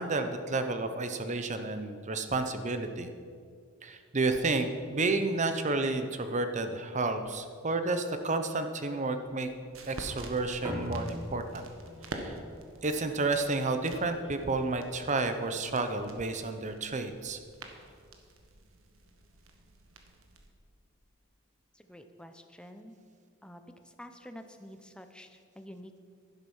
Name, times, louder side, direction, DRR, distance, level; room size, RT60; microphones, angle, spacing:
voice 1, 0.0-3.1 3.8-9.5 9.9-11.7 12.1-12.4 12.8-17.4, right 3 dB, 35° right, 8 dB, 0.8 m, -31 dB
sound 1, 9.2-20.5, right 2 dB, 85° right, 1.4 m, -48 dB
sound 2, 10.6-15.4, equal, 15° right, 1.8 m, -43 dB
voice 2, 21.8-23.0 23.4-23.6 24.0-26.0, equal, 5° left, 7 dB, 0.7 m, -48 dB
11.5 x 11.0 x 5.5 m, 2.2 s
head